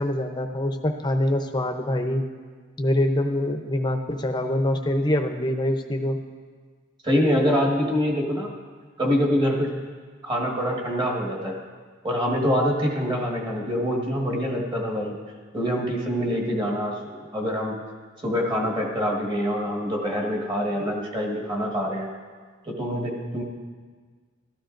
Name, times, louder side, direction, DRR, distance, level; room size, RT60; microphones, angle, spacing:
voice 1, 0.0-2.2 2.8-6.2, left 1 dB, 20° left, 5 dB, 0.7 m, -24 dB
voice 2, 7.0-8.5 9.0-9.7 10.2-11.5 12.0-15.2 15.5-17.8 18.2-22.1 22.6-23.4, equal, 25° right, -1 dB, 1.6 m, -25 dB
14.0 x 13.0 x 2.6 m, 1.5 s
head